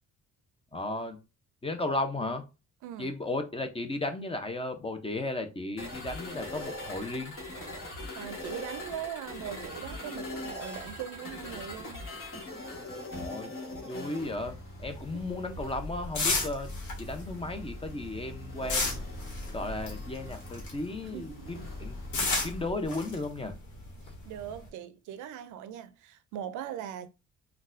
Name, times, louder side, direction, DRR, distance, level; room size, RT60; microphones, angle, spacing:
voice 1, 0.7-1.2 1.6-2.4 3.0-7.3 13.1-16.7 17.0-19.0 19.5-21.9 22.4-23.5, left 2 dB, 20° left, 0.6 m, -35 dB
sound 1, 5.8-22.7, left 1 dB, 45° left, 1.3 m, -41 dB
voice 2, 8.1-12.1 21.1-21.7 24.2-27.1, right 10 dB, 85° right, 0.5 m, -40 dB
sound 2, 14.9-21.0 21.3-24.7, left 3 dB, 70° left, 1.2 m, -33 dB
3.8 x 2.3 x 2.5 m
cardioid pair, 90°, 30 cm